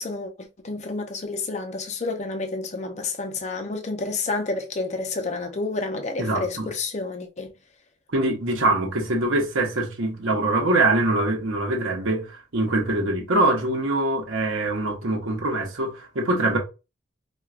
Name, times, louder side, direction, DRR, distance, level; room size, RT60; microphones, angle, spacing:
voice 1, 0.0-7.5, left 3 dB, 35° left, 0.5 m, -30 dB
voice 2, 6.2-6.7 8.1-16.6, right 2 dB, 75° right, 0.9 m, -23 dB
4.4 x 2.3 x 2.3 m
head